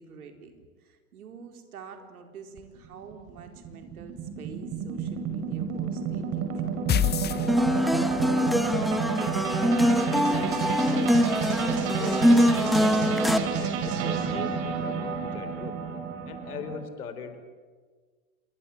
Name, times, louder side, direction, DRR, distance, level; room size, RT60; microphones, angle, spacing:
voice 1, 0.0-7.1, right 6 dB, 65° right, 5 dB, 4.5 m, -47 dB
sound 1, 2.6-16.8, right 6 dB, 40° right, 5.3 m, -30 dB
sound 2, 6.9-8.2, left 10 dB, 20° left, 1.2 m, -26 dB
sound 3, 7.5-13.4, equal, ahead, 1.6 m, -23 dB
voice 2, 8.6-11.1 11.6-15.8 16.3-17.4, left 6 dB, 70° left, 9 dB, 4.2 m, -40 dB
27.0 x 22.0 x 8.9 m, 1.5 s
figure-of-eight pair, 100°, 46 cm